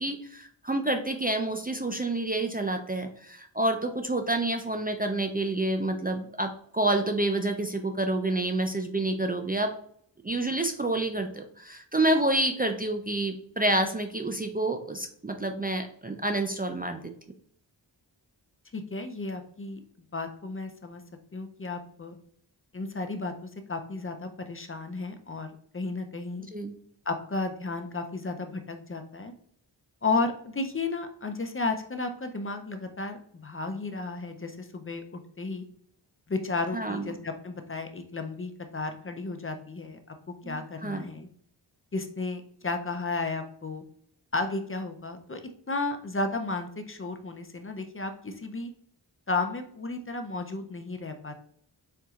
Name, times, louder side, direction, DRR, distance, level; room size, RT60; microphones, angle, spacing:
voice 1, 0.0-9.7 10.2-17.0 26.5-26.7 36.7-37.1 40.4-41.1, right 2 dB, 20° right, 5 dB, 0.4 m, -28 dB
voice 2, 18.7-19.8 20.1-21.0 21.3-22.2 22.7-26.5 27.1-29.3 30.0-35.6 36.3-41.3 41.9-43.8 44.3-45.4 45.7-48.7 49.3-51.3, left 3 dB, 30° left, 6 dB, 0.6 m, -33 dB
4.5 x 3.9 x 2.4 m, 0.64 s
wide cardioid pair, 65°, 46 cm